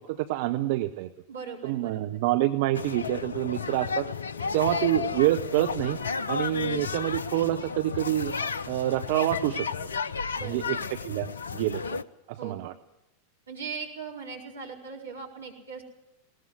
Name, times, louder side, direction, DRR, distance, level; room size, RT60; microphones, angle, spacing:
voice 1, 0.0-1.1 1.6-4.1 4.5-6.0 6.3-8.3 8.7-9.7 10.4-10.8 11.0-12.0 12.3-12.7, right 15 dB, 50° right, 10 dB, 0.8 m, -27 dB
voice 2, 1.3-2.2 10.4-10.9 12.4-12.7 13.5-15.8, right 5 dB, 75° right, 0 dB, 4.6 m, -39 dB
sound 1, 2.7-12.0, left 5 dB, 70° left, 0.7 m, -33 dB
20.5 x 18.5 x 7.8 m, 0.91 s
figure-of-eight pair, 90°, 0 cm